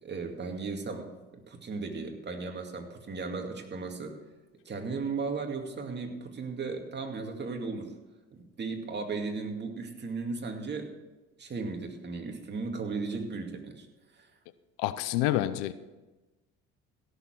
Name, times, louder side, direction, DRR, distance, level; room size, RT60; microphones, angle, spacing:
voice 1, 0.0-4.2 4.7-7.9 8.3-11.0 11.4-13.9 14.1-14.3, right 4 dB, 35° right, 3 dB, 2.3 m, -36 dB
voice 2, 14.8-15.7, left 14 dB, 80° left, 15 dB, 0.7 m, -28 dB
16.0 x 6.9 x 6.2 m, 1.1 s
supercardioid pair, 80°, 31 cm